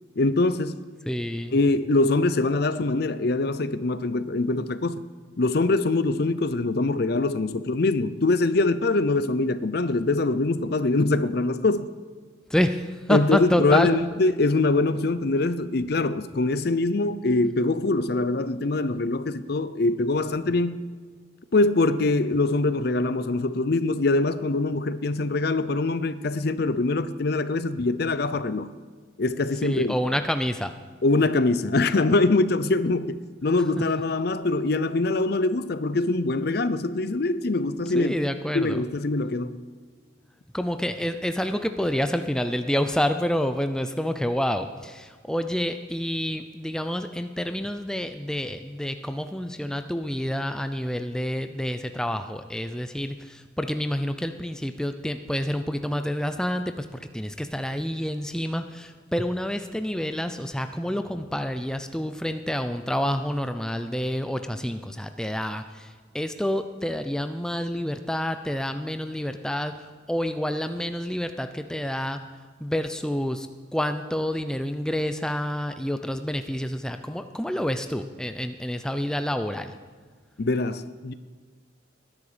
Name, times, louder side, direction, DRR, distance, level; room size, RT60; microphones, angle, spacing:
voice 1, 0.2-0.8 1.5-5.0 5.4-11.9 13.1-20.8 21.5-28.7 29.2-29.9 31.0-38.2 38.5-39.6 80.4-81.1, left 2 dB, 50° left, 0.6 m, -23 dB
voice 2, 1.1-1.6 12.5-13.9 29.6-30.7 33.8-33.9 37.9-38.9 40.5-72.2 72.6-79.8, equal, 5° left, 0.4 m, -28 dB
20.0 x 10.5 x 5.0 m
head